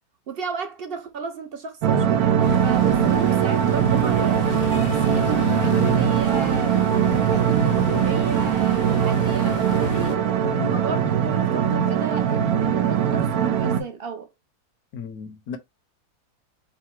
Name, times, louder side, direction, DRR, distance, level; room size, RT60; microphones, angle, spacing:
voice 1, 0.3-4.5 4.7-10.2 10.7-14.3, right 5 dB, 55° right, 0.7 m, -33 dB
sound 1, 1.8-13.8, right 9 dB, 75° right, 1.2 m, -21 dB
sound 2, 2.4-10.2, left 8 dB, 55° left, 0.6 m, -32 dB
voice 2, 10.4-10.8 14.9-15.6, left 5 dB, 80° left, 1.3 m, -34 dB
4.9 x 2.0 x 4.4 m
omnidirectional pair, 1.6 m